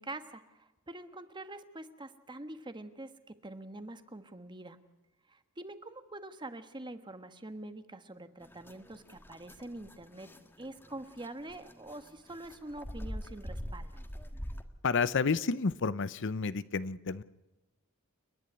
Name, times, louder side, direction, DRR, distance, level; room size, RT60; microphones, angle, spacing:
voice 1, 0.0-4.8 5.3-10.3 10.6-14.0, right 2 dB, 20° right, 10 dB, 1.3 m, -45 dB
sound 1, 8.4-14.6, equal, 10° left, 1.5 m, -44 dB
voice 2, 14.8-17.2, left 4 dB, 60° left, 16 dB, 0.7 m, -30 dB
30.0 x 11.0 x 9.8 m, 1.0 s
head